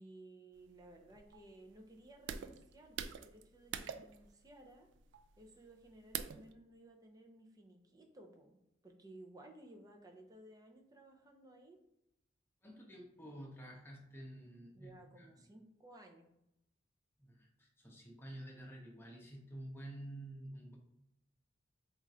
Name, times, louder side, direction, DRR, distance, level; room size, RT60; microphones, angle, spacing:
voice 1, 0.0-4.9 5.4-8.6 8.8-11.8 14.7-16.3, right 1 dB, 20° right, 2 dB, 0.6 m, -58 dB
sound 1, 0.6-6.5, right 8 dB, 70° right, 0.3 m, -46 dB
voice 2, 12.6-15.4 17.2-20.8, right 1 dB, 15° left, -2 dB, 0.9 m, -50 dB
3.7 x 2.5 x 4.2 m, 0.84 s
head